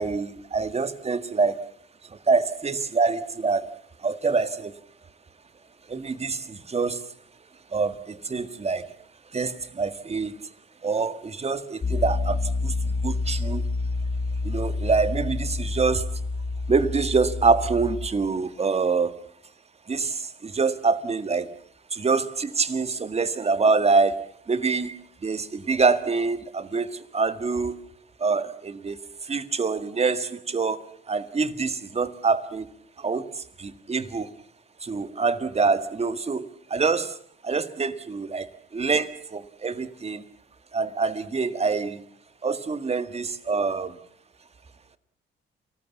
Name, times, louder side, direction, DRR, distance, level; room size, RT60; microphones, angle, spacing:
voice 1, 0.0-1.7 2.3-3.7 4.0-4.7 5.9-7.0 7.7-8.9 9.3-10.5 10.8-13.7 14.4-16.1 16.7-19.2 19.9-21.5 21.9-27.8 28.2-29.0 29.2-32.7 33.0-34.3 34.8-37.2 37.4-40.2 40.7-42.0 42.4-44.0, right 4 dB, 30° right, 1.8 m, -25 dB
Piano, 11.8-18.1, left 3 dB, 40° left, 1.8 m, -28 dB
28.5 x 19.5 x 7.3 m
cardioid pair, 90°, 20 cm